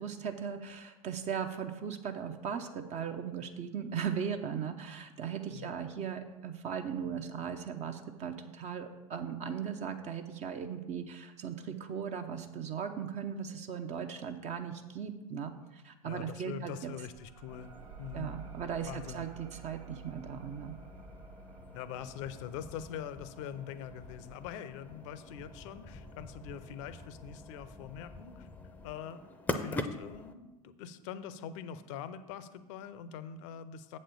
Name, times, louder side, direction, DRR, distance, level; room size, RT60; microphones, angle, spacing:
voice 1, 0.0-16.9 18.1-20.7, right 7 dB, 35° right, 6 dB, 0.7 m, -38 dB
voice 2, 16.0-17.7 18.0-18.3 18.9-19.2 21.7-28.5 28.8-34.0, left 8 dB, 55° left, 13 dB, 0.6 m, -43 dB
sound 1, 17.0-26.2, right 7 dB, 70° right, 0.7 m, -52 dB
sound 2, 17.5-30.3, left 2 dB, 10° left, 0.6 m, -44 dB
7.5 x 4.3 x 6.8 m, 1.1 s
figure-of-eight pair, 85°, 19 cm